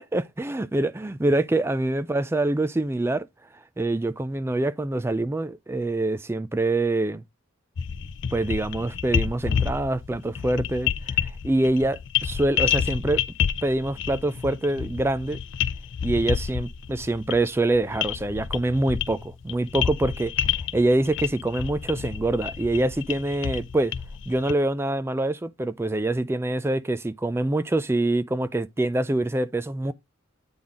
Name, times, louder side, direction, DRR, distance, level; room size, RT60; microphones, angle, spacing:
voice 1, 0.1-3.3 3.8-7.2 8.3-10.9 11.2-13.2 13.6-15.4 16.0-20.3 20.7-23.9 24.3-29.9, right 2 dB, 10° right, 0.3 m, -25 dB
sound 1, 7.8-24.5, left 8 dB, 55° left, 0.4 m, -29 dB
8.6 x 3.9 x 3.6 m
head